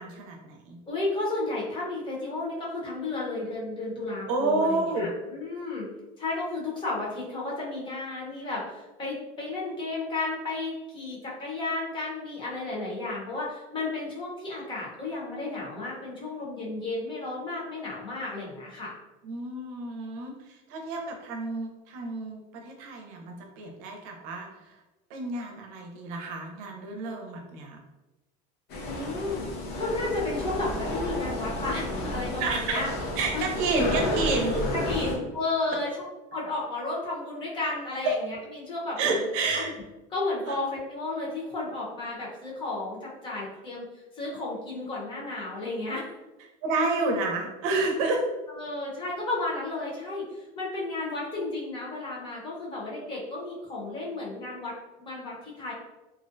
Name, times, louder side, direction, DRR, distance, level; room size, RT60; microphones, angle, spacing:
voice 1, 0.0-0.8 4.3-5.1 19.2-24.8 25.1-27.8 32.4-32.8 33.2-34.7 38.0-38.1 39.0-39.7 40.5-40.6 46.6-48.2, right 3 dB, 75° right, 2 dB, 0.6 m, -29 dB
voice 2, 0.9-5.9 6.2-18.9 28.8-29.5 29.7-32.9 33.3-33.5 34.7-35.9 36.3-39.2 39.5-39.7 40.1-43.8 44.1-46.0 48.5-54.7 55.0-55.7, left 2 dB, 25° left, -4 dB, 0.8 m, -33 dB
sound 1, 28.7-35.2, left 1 dB, 60° left, 0.6 m, -32 dB
2.5 x 2.1 x 2.5 m, 1.1 s
supercardioid pair, 130°, 18 cm